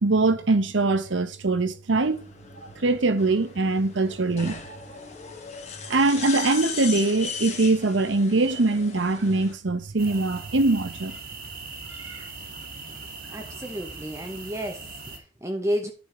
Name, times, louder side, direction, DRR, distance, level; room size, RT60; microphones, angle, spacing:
voice 1, 0.0-2.3 2.8-4.8 5.9-11.2 11.9-12.3, right 3 dB, 80° right, 0.9 m, -23 dB
sound 1, 1.9-9.5, left 5 dB, 40° left, 1.6 m, -38 dB
sound 2, 10.0-15.2, right 3 dB, 55° right, 1.6 m, -40 dB
voice 2, 13.3-15.9, equal, 15° right, 0.7 m, -31 dB
10.5 x 5.1 x 3.7 m
head